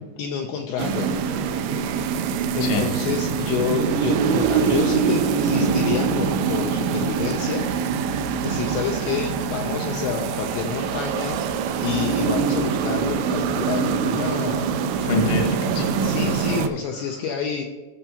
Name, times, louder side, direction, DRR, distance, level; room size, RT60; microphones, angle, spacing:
voice 1, 0.2-1.2 2.5-7.7 8.4-11.4 11.8-14.7 16.0-17.6, left 6 dB, 85° left, 2 dB, 2.2 m, -28 dB
sound 1, 0.8-16.7, right 6 dB, 85° right, 2.4 m, -24 dB
voice 2, 15.0-16.7, left 2 dB, 65° left, 1 dB, 1.7 m, -26 dB
15.5 x 6.7 x 2.9 m, 1.3 s
omnidirectional pair, 5.4 m